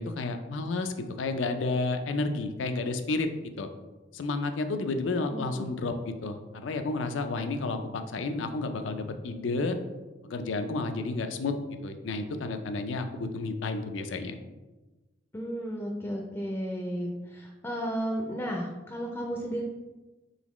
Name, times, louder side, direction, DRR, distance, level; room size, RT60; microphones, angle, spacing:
voice 1, 0.0-3.3 3.6-3.7 4.1-9.8 10.2-11.5 11.8-14.4, left 3 dB, 85° left, 7 dB, 0.4 m, -31 dB
voice 2, 5.3-5.7 15.3-19.6, equal, 15° left, 0 dB, 0.4 m, -33 dB
4.0 x 3.8 x 3.0 m, 1.2 s
head